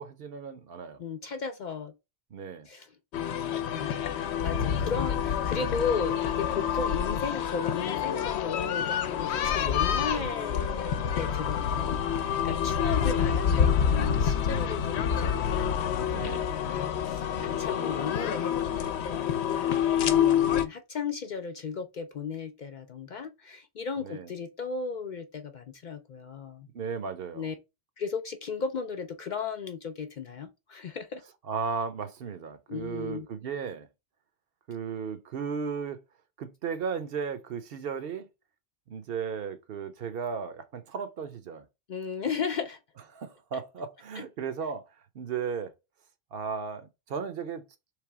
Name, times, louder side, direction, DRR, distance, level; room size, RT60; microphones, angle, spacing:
voice 1, 0.0-1.0 2.3-2.7 10.0-10.4 16.1-16.5 24.0-24.3 26.7-27.5 31.4-33.9 34.7-36.0 36.4-38.3 38.9-41.6 43.1-44.8 45.1-45.7 46.3-47.6, right 6 dB, 65° right, 0.8 m, -35 dB
voice 2, 1.0-1.9 2.7-2.9 3.7-16.2 16.5-19.8 20.0-26.7 27.3-27.5 28.0-31.2 32.7-33.3 41.9-42.8, left 5 dB, 55° left, 0.5 m, -35 dB
sound 1, 3.1-20.6, left 8 dB, 80° left, 0.9 m, -27 dB
3.3 x 3.2 x 4.7 m
omnidirectional pair, 1.1 m